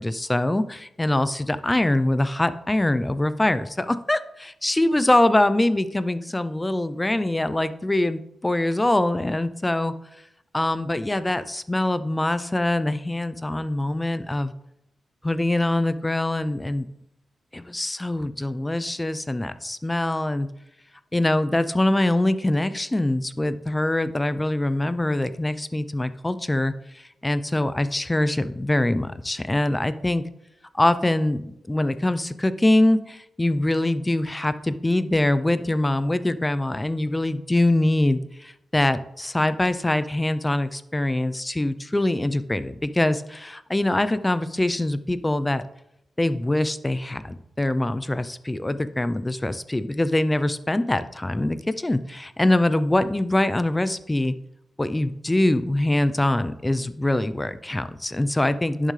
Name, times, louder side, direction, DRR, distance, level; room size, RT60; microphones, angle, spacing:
voice 1, 0.0-9.9 10.5-14.5 15.2-16.9 17.5-20.5 21.1-30.2 30.7-31.4 31.7-45.6 46.2-54.3 54.8-58.9, left 1 dB, 15° left, 13 dB, 0.5 m, -23 dB
10.5 x 7.4 x 3.3 m, 0.80 s
cardioid pair, 80°, 0 cm